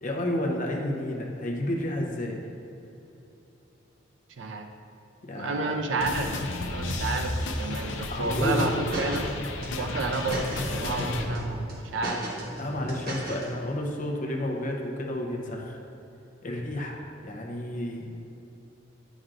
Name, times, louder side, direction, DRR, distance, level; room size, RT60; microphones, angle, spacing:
voice 1, 0.0-2.4 5.2-5.8 8.1-9.0 12.6-15.8 16.4-18.1, left 1 dB, 45° left, 0 dB, 0.8 m, -31 dB
voice 2, 4.4-4.7 5.3-9.2 9.8-10.5 10.7-12.2, right 3 dB, 70° right, 4 dB, 0.5 m, -31 dB
sound 1, 6.0-11.2, left 2 dB, 85° left, 0.6 m, -32 dB
sound 2, 8.2-9.3 9.6-10.7 11.0-11.4 11.7-13.4, equal, 50° right, 1.4 m, -33 dB
8.7 x 6.1 x 2.5 m, 2.9 s
head